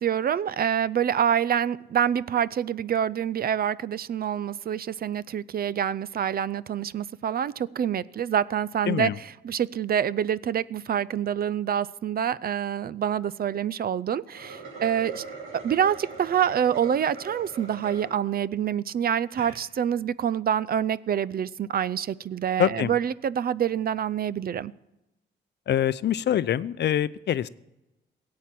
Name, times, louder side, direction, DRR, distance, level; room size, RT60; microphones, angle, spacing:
voice 1, 0.0-9.1 9.4-15.2 15.6-24.7, right 9 dB, 50° right, 0.5 m, -26 dB
voice 2, 8.9-9.2 22.6-22.9 25.7-27.5, left 10 dB, 60° left, 0.5 m, -24 dB
sound 1, 14.2-18.1 18.6-18.7 19.2-19.6, right 4 dB, 90° right, 5.5 m, -41 dB
17.0 x 8.6 x 7.6 m
cardioid pair, 105°, 20 cm